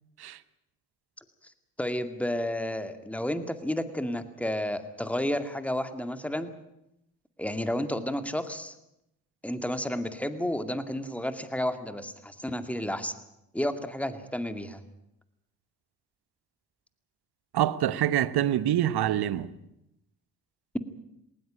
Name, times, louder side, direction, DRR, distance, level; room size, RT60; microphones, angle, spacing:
voice 1, 1.8-6.6 7.4-8.7 9.4-13.1 13.5-14.8, left 1 dB, 5° left, 2.2 m, -31 dB
voice 2, 17.5-19.5, right 12 dB, 60° right, 1.2 m, -25 dB
19.5 x 19.0 x 9.0 m
hypercardioid pair, 45°, 43 cm